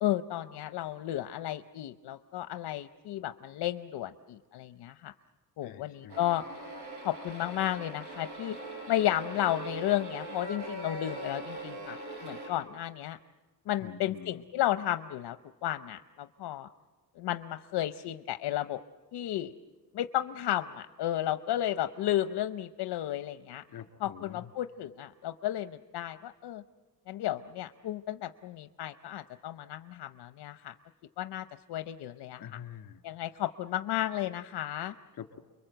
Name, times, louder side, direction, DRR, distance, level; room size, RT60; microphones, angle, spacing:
voice 1, 0.0-5.1 5.6-6.4 7.0-8.6 8.9-12.0 12.2-13.2 13.7-15.4 15.6-16.7 17.2-18.8 19.1-19.5 19.9-23.6 24.0-26.6 27.1-30.7 31.2-32.4 33.0-34.9, left 13 dB, 85° left, 10 dB, 0.7 m, -33 dB
voice 2, 5.6-6.2 13.8-14.4 23.7-24.5 32.4-33.0 35.1-35.4, left 9 dB, 60° left, 6 dB, 2.0 m, -46 dB
sound 1, 6.1-12.5, right 1 dB, 75° right, 6.8 m, -41 dB
30.0 x 22.5 x 7.9 m, 1.3 s
cardioid pair, 150°, 39 cm